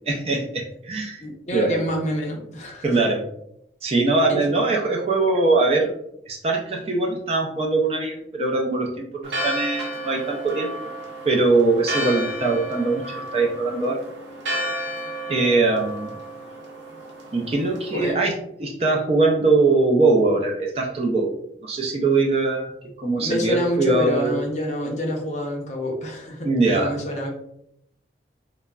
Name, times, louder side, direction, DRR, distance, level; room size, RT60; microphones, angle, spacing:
voice 1, 0.1-1.3 1.5-1.8 2.8-3.2 3.8-5.9 6.3-10.7 11.2-14.0 15.3-16.1 17.3-18.3 18.6-21.3 21.6-22.7 23.0-24.4 26.4-26.9, right 3 dB, 35° right, 1 dB, 0.3 m, -21 dB
voice 2, 1.2-3.0 4.3-4.5 17.9-18.1 23.1-27.3, equal, 40° left, 0 dB, 0.6 m, -27 dB
Church bell, 9.2-18.1, equal, 90° right, 0.7 m, -32 dB
3.4 x 2.0 x 2.2 m, 0.76 s
head